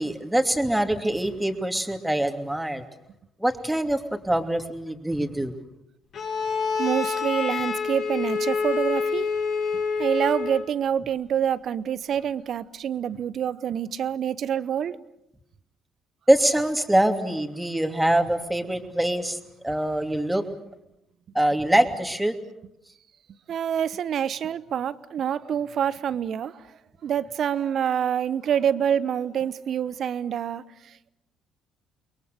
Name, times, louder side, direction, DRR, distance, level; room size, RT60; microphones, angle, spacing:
voice 1, 0.0-2.8 3.4-5.6 16.3-19.4 19.6-20.4 21.3-22.3, right 1 dB, 5° right, 6 dB, 2.8 m, -24 dB
Bowed string instrument, 6.1-10.7, left 5 dB, 55° left, 3.1 m, -27 dB
voice 2, 6.8-9.3 10.0-15.0 23.5-26.6 27.0-30.6, right 9 dB, 55° right, 18 dB, 0.9 m, -26 dB
29.5 x 22.0 x 6.7 m, 0.82 s
hypercardioid pair, 50°, 0 cm